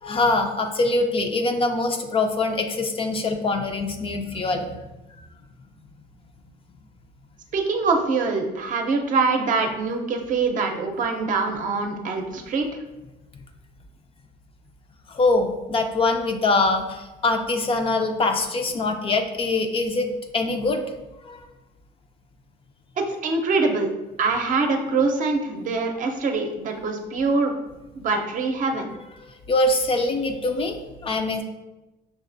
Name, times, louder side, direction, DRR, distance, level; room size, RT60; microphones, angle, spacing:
voice 1, 0.0-4.8 5.1-5.2 15.1-20.1 20.3-20.9 21.2-21.4 29.3-31.4, left 2 dB, 35° left, 5 dB, 0.4 m, -23 dB
voice 2, 7.5-12.7 23.0-23.9 24.2-27.5 28.0-28.9, right 4 dB, 50° right, 3 dB, 0.6 m, -24 dB
5.8 x 2.4 x 2.6 m, 1.0 s
cardioid pair, 110°, 17 cm